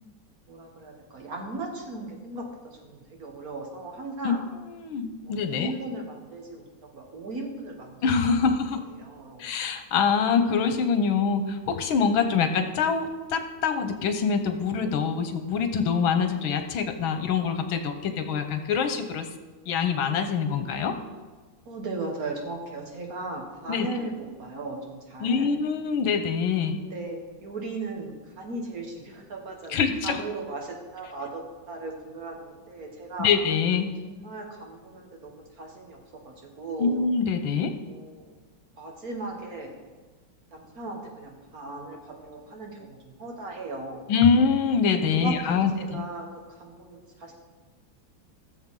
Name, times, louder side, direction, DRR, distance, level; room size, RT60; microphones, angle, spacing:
voice 1, 0.5-4.4 5.2-6.7 6.9-8.6 9.0-9.5 12.3-12.4 21.7-24.1 24.4-25.5 26.8-33.3 34.0-36.0 36.2-37.0 37.9-38.3 38.8-39.8 40.5-44.1 45.1-47.3, right 2 dB, 50° right, 1 dB, 2.0 m, -37 dB
voice 2, 4.7-5.7 8.0-8.9 9.4-19.3 19.7-21.0 23.7-23.9 25.2-26.8 29.7-30.2 33.2-33.9 36.8-37.7 44.1-46.0, left 6 dB, 90° left, 8 dB, 1.7 m, -25 dB
17.0 x 7.1 x 3.8 m, 1.3 s
omnidirectional pair, 2.2 m